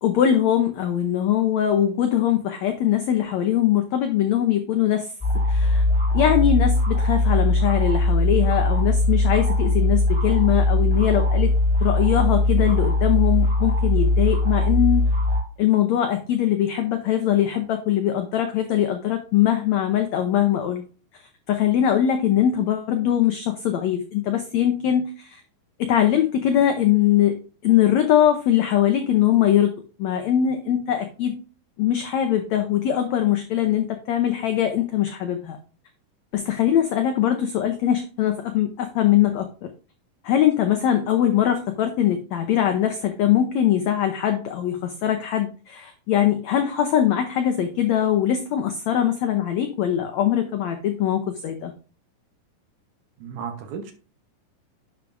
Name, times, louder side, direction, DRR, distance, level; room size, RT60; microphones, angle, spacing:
voice 1, 0.0-5.1 5.5-5.8 6.1-11.5 11.8-15.1 15.6-20.8 21.5-25.4 25.8-27.4 27.6-29.7 30.0-31.4 31.8-35.6 36.3-39.7 40.2-51.7, left 10 dB, 85° left, 6 dB, 1.5 m, -21 dB
sound 1, 5.2-15.4, left 2 dB, ahead, 2.6 m, -20 dB
voice 2, 53.2-53.9, right 7 dB, 65° right, 5 dB, 2.2 m, -34 dB
10.5 x 5.9 x 2.6 m, 0.37 s
omnidirectional pair, 4.2 m